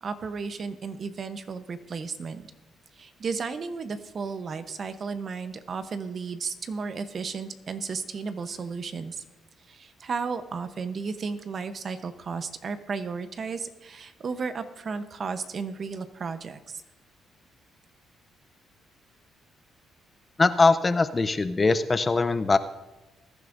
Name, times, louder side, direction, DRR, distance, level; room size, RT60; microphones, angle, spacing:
voice 1, 0.0-2.5 3.0-9.2 9.7-16.8, right 5 dB, 50° right, 10 dB, 0.8 m, -34 dB
voice 2, 20.4-22.6, left 3 dB, 25° left, 11 dB, 0.6 m, -21 dB
20.5 x 10.5 x 2.6 m, 1.0 s
cardioid pair, 85°, 0 cm